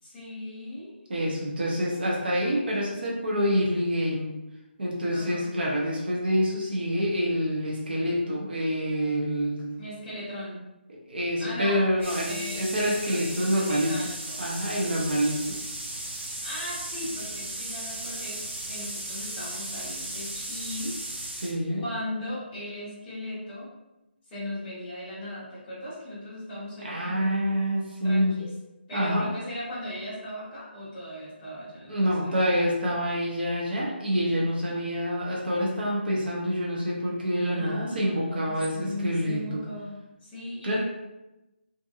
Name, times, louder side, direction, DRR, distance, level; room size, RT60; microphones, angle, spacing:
voice 1, 0.0-0.9 5.1-5.5 9.8-10.6 11.4-14.4 16.4-21.5 21.8-23.7 24.3-27.3 28.0-28.5 28.9-32.4 37.5-39.9 40.2-40.8, left 1 dB, 10° left, -13 dB, 0.7 m, -38 dB
voice 2, 1.1-4.3 4.8-9.7 10.9-13.9 14.4-15.5 21.4-21.8 26.8-28.4 28.9-29.2 31.9-39.6 40.6-40.8, equal, 55° right, -4 dB, 0.7 m, -27 dB
sound 1, 12.0-21.5, right 1 dB, 85° right, 0.8 m, -36 dB
2.6 x 2.5 x 2.3 m, 0.98 s
hypercardioid pair, 180°, 6 cm